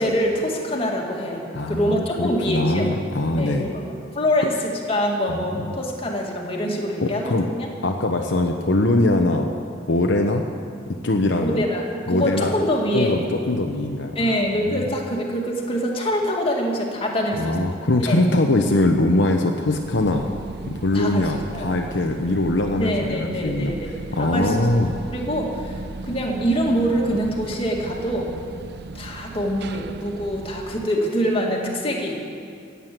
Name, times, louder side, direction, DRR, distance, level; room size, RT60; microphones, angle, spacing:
voice 1, 0.0-2.9 3.4-7.7 11.4-13.2 14.2-18.2 20.9-21.7 22.8-24.7 25.1-28.3 28.9-32.2, equal, 30° left, -1 dB, 2.1 m, -25 dB
voice 2, 1.5-3.7 5.3-5.8 7.0-7.5 7.8-9.5 9.9-10.4 10.9-11.6 12.1-12.5 12.9-14.4 14.6-14.8 17.4-20.3 20.7-23.7 24.1-24.9, left 2 dB, 65° left, 3 dB, 0.8 m, -22 dB
sound 1, 19.6-30.9, right 3 dB, 55° right, 0.5 m, -36 dB
15.0 x 8.3 x 9.2 m, 2.5 s
head